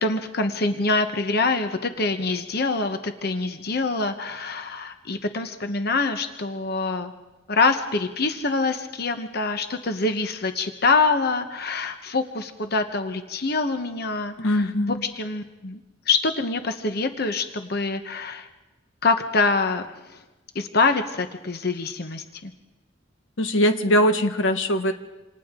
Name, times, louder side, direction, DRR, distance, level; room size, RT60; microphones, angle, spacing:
voice 1, 0.0-7.1 7.5-15.8 16.1-18.5 19.0-20.2 20.5-22.5, left 3 dB, 55° left, 7 dB, 1.1 m, -25 dB
voice 2, 14.4-15.0 23.4-24.9, equal, 85° left, 7 dB, 1.4 m, -21 dB
28.0 x 27.0 x 3.8 m, 1.1 s
head